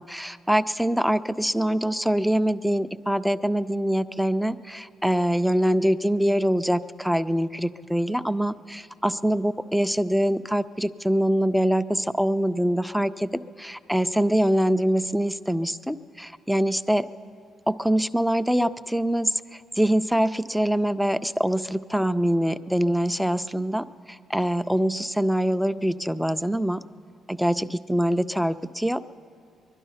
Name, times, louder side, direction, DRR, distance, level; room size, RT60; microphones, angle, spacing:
voice 1, 0.0-13.3 13.6-17.1 17.7-19.4 19.8-23.8 24.3-26.8 27.3-29.0, right 1 dB, ahead, 13 dB, 0.4 m, -24 dB
21.0 x 12.0 x 5.6 m, 2.4 s
cardioid pair, 90°, 0 cm